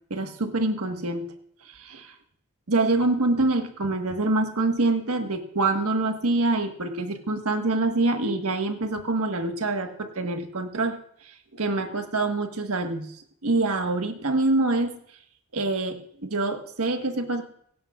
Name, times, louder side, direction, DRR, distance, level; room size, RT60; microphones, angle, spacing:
voice 1, 0.1-1.3 1.6-2.1 2.7-11.0 11.5-13.1 13.4-15.0 15.5-17.4, right 2 dB, 80° right, 6 dB, 1.5 m, -25 dB
17.0 x 16.5 x 2.4 m, 0.66 s
head